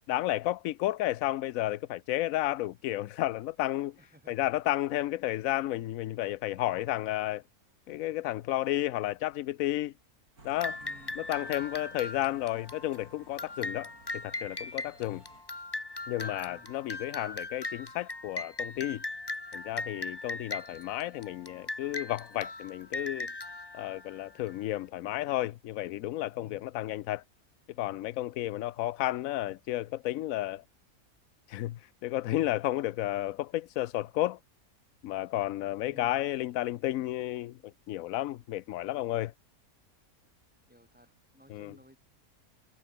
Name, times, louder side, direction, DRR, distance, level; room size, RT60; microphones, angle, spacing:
voice 1, 0.1-4.0 4.3-7.4 7.9-9.9 10.4-10.8 11.2-15.2 16.1-19.0 19.5-23.3 23.7-27.2 27.8-30.6 31.5-34.4 35.0-37.6 37.9-39.3 41.5-41.7, left 15 dB, 70° left, 1.0 m, -32 dB
voice 2, 4.0-4.5 10.8-11.2 16.5-16.7 26.4-26.7 35.9-36.2 40.7-42.0, equal, 5° right, 5.8 m, -58 dB
sound 1, 10.4-15.4, right 3 dB, 90° right, 4.6 m, -57 dB
sound 2, 10.6-24.7, left 2 dB, 15° left, 1.4 m, -39 dB
omnidirectional pair, 1.6 m